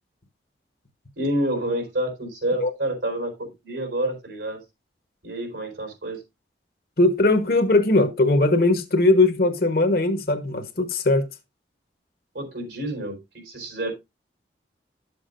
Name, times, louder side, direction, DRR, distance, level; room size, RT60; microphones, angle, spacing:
voice 1, 1.2-4.6 5.2-6.2 12.3-13.9, right 1 dB, 85° right, 4.2 m, -28 dB
voice 2, 7.0-11.2, left 2 dB, 55° left, 1.1 m, -19 dB
11.0 x 7.2 x 2.5 m
head